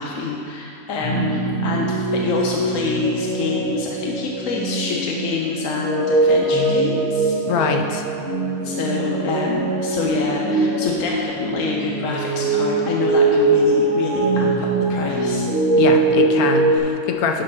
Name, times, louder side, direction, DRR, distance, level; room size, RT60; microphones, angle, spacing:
voice 1, 0.0-7.8 8.6-15.5, left 4 dB, 70° left, -2 dB, 1.1 m, -26 dB
sound 1, 1.0-16.8, right 2 dB, 90° right, 2.5 m, -21 dB
voice 2, 7.5-8.0 15.8-17.4, left 5 dB, 90° left, 4 dB, 1.2 m, -23 dB
11.0 x 3.9 x 5.5 m, 2.6 s
omnidirectional pair, 1.5 m